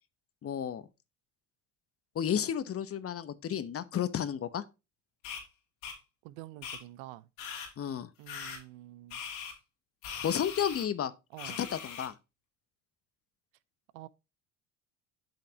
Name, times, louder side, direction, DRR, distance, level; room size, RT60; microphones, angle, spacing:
voice 1, 0.4-0.8 2.1-4.6 7.8-8.1 10.2-11.1 11.6-12.1, left 9 dB, 35° left, 0.9 m, -32 dB
sound 1, 5.2-5.4 5.8-6.0 6.6-6.8 7.4-7.7 8.3-8.6 9.1-9.5 10.0-10.8 11.4-12.1, left 7 dB, 75° left, 2.8 m, -40 dB
voice 2, 6.2-7.3 8.2-9.2 11.3-11.6 13.9-14.1, right 16 dB, 70° right, 0.7 m, -47 dB
8.8 x 5.7 x 2.8 m
hypercardioid pair, 70°, 38 cm